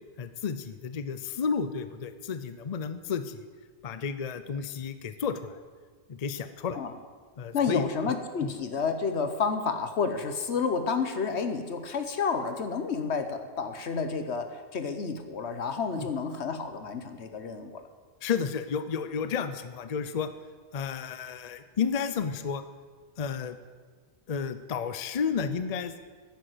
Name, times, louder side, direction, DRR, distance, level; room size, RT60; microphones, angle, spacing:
voice 1, 0.2-3.5 3.8-5.6 6.1-6.8 7.4-8.1 8.4-8.5 15.9-16.1 18.2-20.3 20.7-22.6 23.2-23.6 24.3-25.9, left 6 dB, 40° left, 11 dB, 0.7 m, -32 dB
voice 2, 7.5-17.8, left 5 dB, 80° left, 8 dB, 1.4 m, -30 dB
10.5 x 10.0 x 7.9 m, 1.5 s
omnidirectional pair, 1.1 m